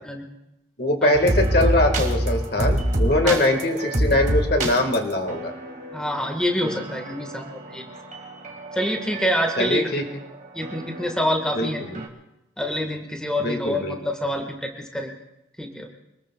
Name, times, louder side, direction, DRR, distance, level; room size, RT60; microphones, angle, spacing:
voice 1, 0.8-5.5 9.6-10.0 11.5-12.0 13.4-13.9, left 1 dB, 55° left, 5 dB, 1.6 m, -22 dB
sound 1, 1.1-12.1, right 1 dB, 40° right, 1.9 m, -27 dB
voice 2, 5.9-7.9 8.7-10.0 10.5-11.8 12.6-15.1 15.6-15.9, left 1 dB, 5° left, 2 dB, 1.4 m, -26 dB
26.5 x 20.5 x 2.3 m, 0.88 s
head